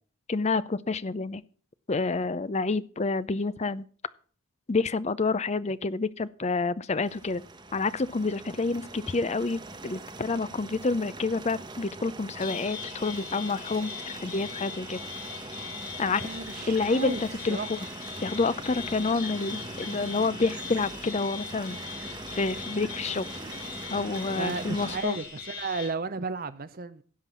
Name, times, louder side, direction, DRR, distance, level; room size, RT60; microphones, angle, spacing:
voice 1, 0.3-1.4 1.9-3.8 4.7-7.4 7.7-15.0 16.0-16.2 16.7-17.8 18.2-21.8 22.4-23.2 23.9-25.2, left 3 dB, 30° left, 0.5 m, -28 dB
sound 1, 7.0-25.0, right 2 dB, 20° right, 1.2 m, -42 dB
sound 2, 12.4-25.9, left 6 dB, 75° left, 5.0 m, -40 dB
sound 3, 15.8-25.2, right 6 dB, 70° right, 4.0 m, -54 dB
voice 2, 16.2-17.2 17.5-17.7 24.3-27.0, right 4 dB, 40° right, 0.6 m, -33 dB
16.0 x 5.9 x 7.2 m
head